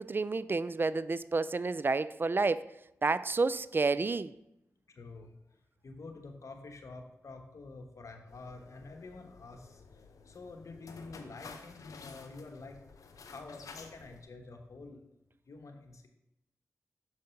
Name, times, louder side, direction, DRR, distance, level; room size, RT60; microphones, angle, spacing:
voice 1, 0.0-2.7 3.0-4.3, right 3 dB, 40° right, 16 dB, 0.4 m, -30 dB
voice 2, 4.9-5.3 5.8-9.8 10.2-12.8 13.3-15.0 15.5-16.1, left 3 dB, 65° left, 4 dB, 1.2 m, -48 dB
sound 1, 8.3-14.2, left 4 dB, 80° left, 0.7 m, -52 dB
6.4 x 4.7 x 5.8 m, 0.88 s
cardioid pair, 40°, 6 cm